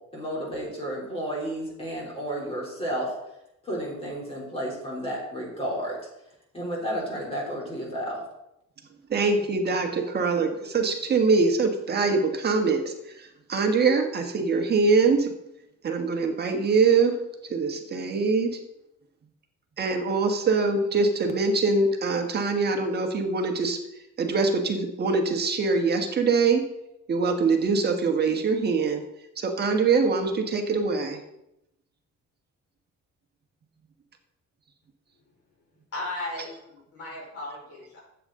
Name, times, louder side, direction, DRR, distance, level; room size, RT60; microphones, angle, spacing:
voice 1, 0.1-3.1 3.6-6.0 6.5-8.2, equal, 20° left, -4 dB, 3.3 m, -32 dB
voice 2, 9.1-15.3 15.8-17.2 17.5-18.6 19.8-23.8 24.2-26.7 27.1-29.0 29.4-31.2, right 4 dB, 35° right, 4 dB, 1.4 m, -23 dB
voice 3, 35.9-38.0, left 2 dB, 50° left, -3 dB, 4.6 m, -36 dB
13.0 x 8.3 x 3.8 m, 0.85 s
cardioid pair, 165°, 31 cm